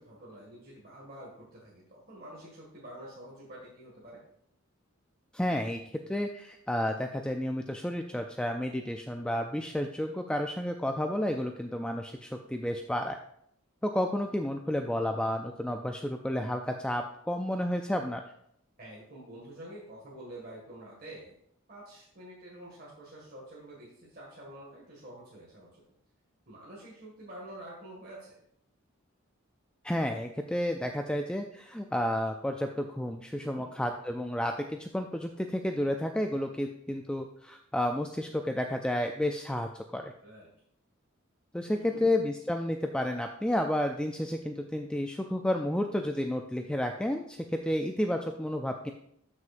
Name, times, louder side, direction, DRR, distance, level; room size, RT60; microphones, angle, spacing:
voice 1, 0.0-4.2 18.8-21.3 21.7-25.8 26.5-28.4 33.4-33.7 40.2-40.5 41.6-42.2, right 1 dB, 45° right, -5 dB, 1.9 m, -48 dB
voice 2, 5.3-5.8 6.1-13.2 13.8-18.2 29.8-40.1 41.5-48.9, left 1 dB, 5° left, 4 dB, 0.3 m, -31 dB
13.0 x 6.3 x 2.5 m, 0.71 s
head